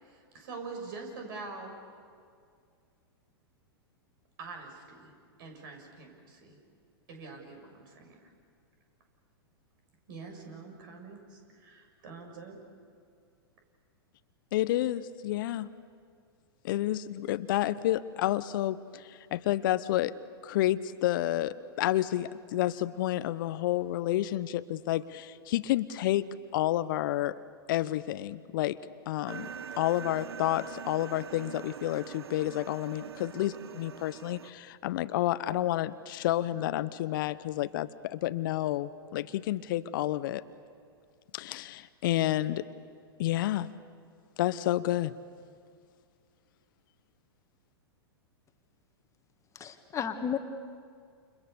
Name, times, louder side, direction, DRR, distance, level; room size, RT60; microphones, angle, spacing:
voice 1, 0.0-1.8 4.4-5.1 5.4-6.6 7.1-8.3 10.1-12.6, right 4 dB, 60° right, 3 dB, 7.1 m, -45 dB
voice 2, 14.5-15.7 16.6-20.1 20.4-26.3 26.5-27.4 27.7-28.8 29.1-29.5 29.8-40.4 41.3-42.6 43.2-43.7 44.4-45.1, left 14 dB, 55° left, 14 dB, 0.9 m, -30 dB
sound 1, 29.3-34.5, right 7 dB, 75° right, 0.8 m, -43 dB
voice 3, 49.5-50.4, left 8 dB, 25° left, 6 dB, 1.8 m, -33 dB
29.5 x 29.0 x 6.9 m, 2.2 s
figure-of-eight pair, 105°, 13 cm